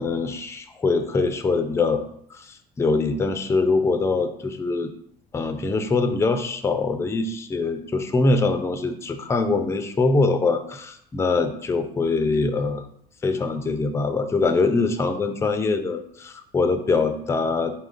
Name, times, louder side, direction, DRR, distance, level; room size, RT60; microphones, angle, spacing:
voice 1, 0.0-2.0 2.3-4.9 5.3-12.8 13.2-17.7, left 3 dB, 15° left, 8 dB, 0.4 m, -23 dB
4.0 x 3.6 x 2.5 m, 0.68 s
cardioid pair, 110°, 17 cm